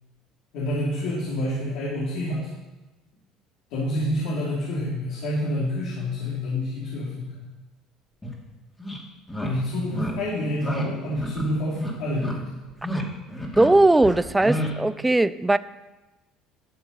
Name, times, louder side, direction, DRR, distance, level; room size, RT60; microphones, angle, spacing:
voice 1, 0.5-2.5 3.7-7.5 9.4-12.6, left 1 dB, 75° left, -5 dB, 2.9 m, -28 dB
sound 1, 8.2-8.3 8.8-9.0 9.3-9.5 9.9-10.1 10.6-10.9 11.1-11.4 11.7-12.3 12.7-13.0 13.3-13.7 14.0-14.7, equal, 15° left, 2.4 m, -30 dB
voice 2, 13.6-15.6, right 2 dB, 10° right, 16 dB, 0.4 m, -19 dB
12.0 x 7.0 x 5.5 m, 1.1 s
supercardioid pair, 100°, 0 cm